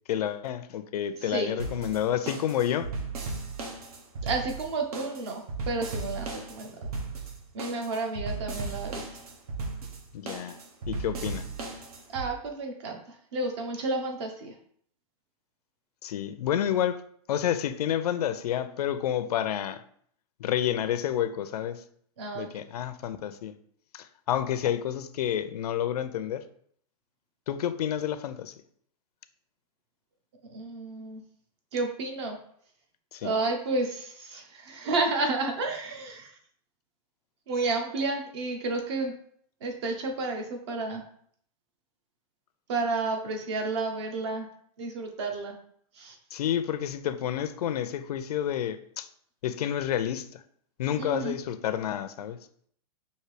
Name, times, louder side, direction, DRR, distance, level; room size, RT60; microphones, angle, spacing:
voice 1, 0.1-2.9 10.1-10.6 10.9-11.4 16.0-17.0 17.3-19.8 20.4-21.8 22.3-23.6 23.9-26.4 27.5-28.5 33.1-33.3 46.3-49.1 49.4-50.4 50.8-52.4, left 10 dB, 90° left, 0.5 m, -29 dB
voice 2, 1.2-1.5 4.2-6.8 7.5-9.0 12.1-13.0 13.3-14.5 22.2-22.5 30.5-31.2 31.7-32.4 33.2-36.3 37.5-39.1 39.6-41.0 42.7-44.5 44.8-45.6 46.0-46.2 51.0-51.4, right 3 dB, 45° right, 0.9 m, -31 dB
sound 1, 1.6-12.3, right 3 dB, 75° right, 1.0 m, -36 dB
5.6 x 2.7 x 3.3 m
supercardioid pair, 170°, 19 cm